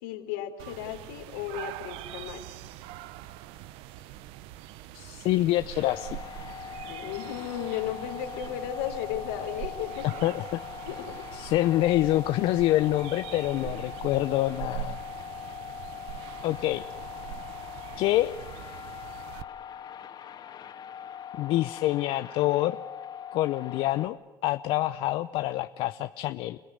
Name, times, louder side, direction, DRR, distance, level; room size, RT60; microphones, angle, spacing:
voice 1, 0.0-2.4 6.9-10.2 10.8-11.1 13.6-13.7, left 10 dB, 90° left, 5 dB, 3.6 m, -35 dB
sound 1, 0.6-19.4, right 14 dB, 75° right, 0.9 m, -43 dB
voice 2, 4.9-6.2 10.0-10.6 11.3-15.0 16.4-16.9 18.0-18.3 21.4-22.8 23.3-26.6, left 15 dB, 70° left, 11 dB, 0.8 m, -26 dB
sound 2, 5.8-24.1, left 9 dB, 50° left, 2.7 m, -41 dB
29.5 x 18.5 x 9.5 m, 1.2 s
supercardioid pair, 75°, 9 cm